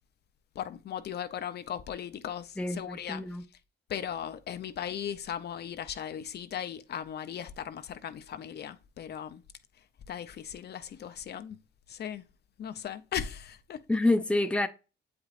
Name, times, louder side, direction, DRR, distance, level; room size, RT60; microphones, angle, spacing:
voice 1, 0.6-3.4 3.9-9.4 10.1-11.6 11.9-12.2 12.6-14.1, left 9 dB, 55° left, 0.6 m, -38 dB
voice 2, 2.6-3.4 13.9-14.7, left 2 dB, 5° left, 0.6 m, -27 dB
7.8 x 4.9 x 2.5 m
cardioid pair, 90°, 20 cm